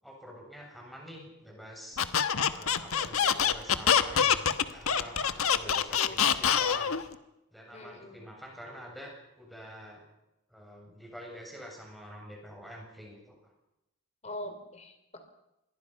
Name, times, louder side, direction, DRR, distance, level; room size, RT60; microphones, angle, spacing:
voice 1, 0.0-2.0 2.5-7.0 7.5-10.0 10.5-13.5, equal, ahead, -1 dB, 7.6 m, -46 dB
Squeak, 2.0-7.0, left 8 dB, 85° left, 1.3 m, -25 dB
voice 2, 5.6-6.2 7.7-8.2 14.2-15.0, left 1 dB, 30° left, 7 dB, 3.9 m, -42 dB
27.0 x 22.0 x 5.8 m, 0.90 s
head